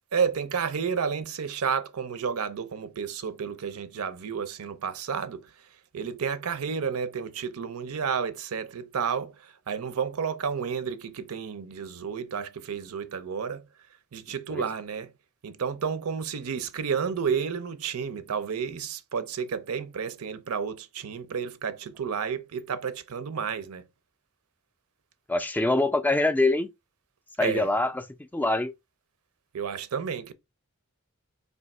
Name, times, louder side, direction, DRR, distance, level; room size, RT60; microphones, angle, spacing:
voice 1, 0.1-5.5 5.9-13.6 14.1-15.1 15.4-23.9 27.4-27.7 29.5-30.3, right 6 dB, 80° right, 0.5 m, -31 dB
voice 2, 25.3-26.7 27.4-28.0 28.3-28.7, left 2 dB, 10° left, 0.3 m, -24 dB
3.4 x 2.7 x 4.1 m
head